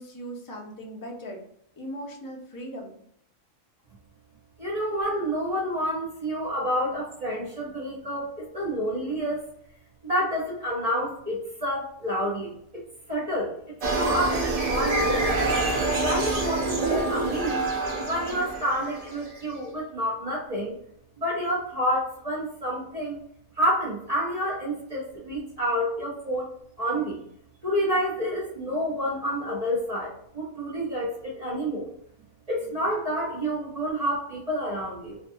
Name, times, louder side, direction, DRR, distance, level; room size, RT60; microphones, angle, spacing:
voice 1, 0.0-1.4 1.8-2.9, equal, 30° left, -1 dB, 0.4 m, -38 dB
voice 2, 4.6-9.4 10.0-12.8 13.1-15.4 16.0-17.7 18.0-20.8 21.2-23.2 23.6-26.5 26.8-27.2 27.6-31.9 32.5-35.2, equal, 35° right, -5 dB, 0.7 m, -29 dB
sound 1, 13.8-19.4, right 2 dB, 65° right, 0.3 m, -26 dB
2.6 x 2.3 x 2.6 m, 0.69 s
omnidirectional pair, 1.4 m